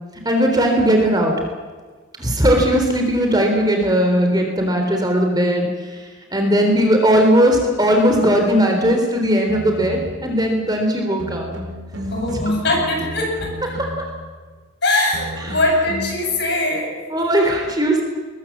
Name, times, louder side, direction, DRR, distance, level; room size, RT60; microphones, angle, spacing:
voice 1, 0.3-1.3 2.2-5.7 6.3-11.4 17.1-18.0, equal, 20° right, 3 dB, 3.7 m, -17 dB
sound 1, 9.5-10.3 11.2-14.2 15.1-16.2, equal, 65° right, 4.8 m, -32 dB
voice 2, 12.1-13.7 14.8-17.0, left 2 dB, 55° left, 1 dB, 7.7 m, -21 dB
22.0 x 21.5 x 7.5 m, 1.4 s
head